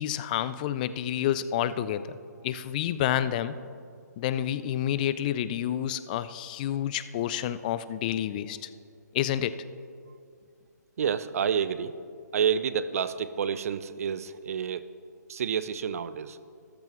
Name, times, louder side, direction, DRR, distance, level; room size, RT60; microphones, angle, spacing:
voice 1, 0.0-2.1 2.4-3.5 4.2-8.7 9.1-9.5, left 11 dB, 25° left, 15 dB, 0.4 m, -29 dB
voice 2, 11.0-11.9 12.3-14.8 15.3-16.4, right 7 dB, 50° right, 14 dB, 0.6 m, -29 dB
14.0 x 13.5 x 3.1 m, 2.3 s
figure-of-eight pair, 145°, 10 cm